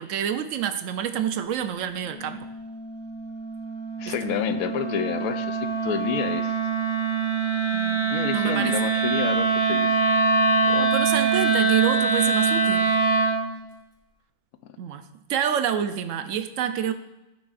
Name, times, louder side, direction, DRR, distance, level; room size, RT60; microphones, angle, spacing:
voice 1, 0.0-2.5 4.1-4.2 7.7-8.8 10.8-13.0 14.8-16.9, right 9 dB, 65° right, 9 dB, 0.9 m, -28 dB
Wind instrument woodwind instrument, 1.9-13.4, right 4 dB, 40° right, 2.0 m, -24 dB
voice 2, 4.0-6.5 8.1-10.0 10.6-10.9, left 9 dB, 70° left, 10 dB, 1.0 m, -29 dB
15.5 x 6.2 x 2.5 m, 0.97 s
omnidirectional pair, 1.7 m